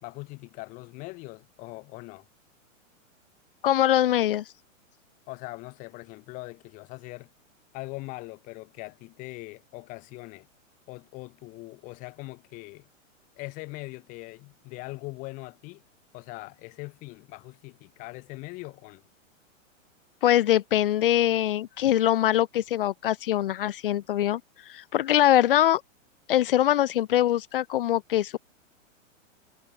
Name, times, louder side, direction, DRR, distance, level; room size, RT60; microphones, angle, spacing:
voice 1, 0.0-2.3 5.3-7.3 7.7-10.5 10.9-12.9 13.4-15.8 16.1-19.0, left 23 dB, 20° left, 3.9 m, -41 dB
voice 2, 3.6-4.4 20.2-24.4 24.7-25.8 26.3-28.4, left 12 dB, 40° left, 2.3 m, -23 dB
hypercardioid pair, 180°, 39 cm